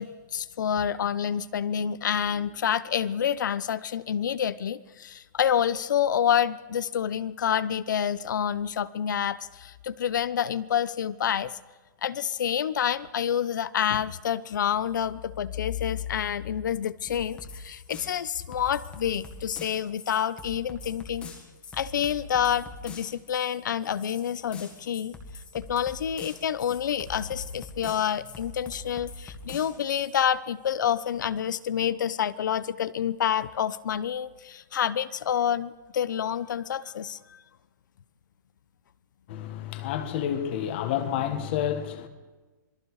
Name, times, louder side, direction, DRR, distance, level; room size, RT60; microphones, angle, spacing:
voice 1, 0.0-11.6 12.0-21.3 21.7-25.2 25.5-37.4, left 9 dB, 70° left, 0.8 m, -28 dB
sound 1, 17.1-30.2, left 3 dB, 10° left, 1.9 m, -44 dB
voice 2, 39.3-42.1, left 10 dB, 30° left, 1.6 m, -29 dB
26.5 x 20.5 x 4.9 m
hypercardioid pair, 180°, 10 cm